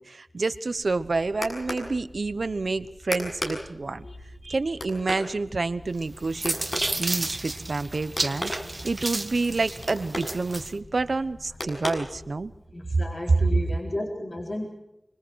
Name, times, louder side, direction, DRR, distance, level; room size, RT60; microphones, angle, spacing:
voice 1, 0.0-4.1 4.4-6.6 7.0-8.5 8.8-12.5, right 3 dB, 85° right, 13 dB, 1.1 m, -28 dB
sound 1, 0.7-12.6, left 1 dB, 75° left, 7.0 m, -38 dB
sound 2, 6.0-10.7, right 2 dB, 50° right, 1.6 m, -32 dB
voice 2, 12.7-14.7, left 1 dB, 55° left, 0 dB, 4.4 m, -33 dB
25.5 x 25.0 x 4.7 m, 0.88 s
wide cardioid pair, 50°, 0 cm